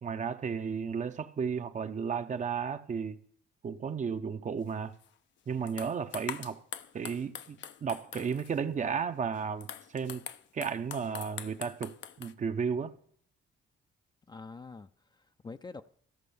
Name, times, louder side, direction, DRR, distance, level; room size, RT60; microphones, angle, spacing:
voice 1, 0.0-3.2 3.6-4.9 5.5-6.6 6.9-10.2 10.5-12.9, right 6 dB, 40° right, 0.7 m, -34 dB
sound 1, 5.0-5.1 5.7-8.6 9.4-12.3, left 10 dB, 70° left, 0.6 m, -44 dB
voice 2, 14.3-15.8, left 4 dB, 20° left, 0.4 m, -46 dB
13.5 x 5.3 x 6.9 m
cardioid pair, 90°, 20 cm